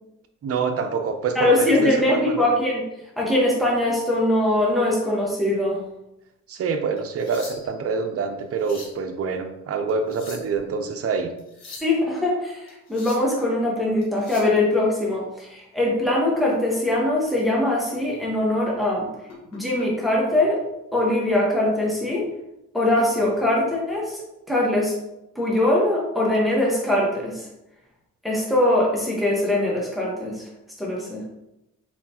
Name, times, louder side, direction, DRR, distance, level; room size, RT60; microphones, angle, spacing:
voice 1, 0.4-2.5 6.5-11.3, right 5 dB, 50° right, 6 dB, 0.7 m, -26 dB
voice 2, 1.3-2.8 3.2-5.8 11.8-19.1 19.5-20.6 20.9-22.2 22.7-24.2 24.5-24.9 25.3-27.4 28.2-30.5 30.8-31.2, left 1 dB, ahead, -4 dB, 1.4 m, -22 dB
sound 1, 7.0-7.9 8.4-9.0 9.9-10.6 11.4-11.9 12.7-13.3 14.0-14.6 16.6-16.8 17.3-17.5 18.0-18.1 19.3-19.9 21.0-21.2, left 3 dB, 60° left, 1.7 m, -43 dB
4.2 x 4.1 x 2.9 m, 0.87 s
cardioid pair, 90°, 30 cm